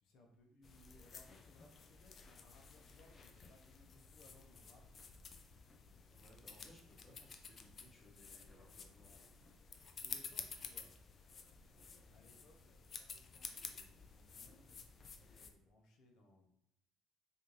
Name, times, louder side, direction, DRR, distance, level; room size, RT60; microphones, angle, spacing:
voice 1, 0.0-4.8 5.8-6.5 9.9-10.9 11.7-14.8 15.1-16.5, left 2 dB, 70° left, 1 dB, 0.9 m, -66 dB
sound 1, 0.6-15.5, left 5 dB, 45° left, 0.4 m, -53 dB
voice 2, 6.1-9.5 12.1-12.3, left 1 dB, 20° left, -2 dB, 1.3 m, -65 dB
4.2 x 2.6 x 3.2 m, 0.80 s
cardioid pair, 95°, 0 cm